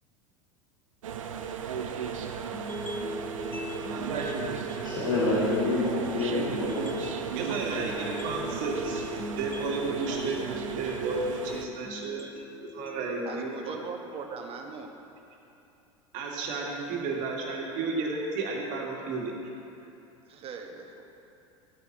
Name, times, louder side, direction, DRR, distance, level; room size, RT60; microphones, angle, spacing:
sound 1, 1.0-11.7, right 7 dB, 80° right, 0.7 m, -36 dB
sound 2, 2.5-14.5, equal, 10° left, 0.7 m, -40 dB
voice 1, 3.5-4.8 7.3-9.0 9.4-12.3 12.6-13.7 16.1-19.3, right 3 dB, 50° right, -1 dB, 1.8 m, -33 dB
voice 2, 4.8-7.0, left 2 dB, 75° left, -9 dB, 2.3 m, -27 dB
voice 3, 13.2-15.0 19.8-19.9 20.2-21.1, right 5 dB, 35° right, 3 dB, 1.1 m, -40 dB
14.0 x 8.3 x 3.0 m, 2.8 s
hypercardioid pair, 85°, 17 cm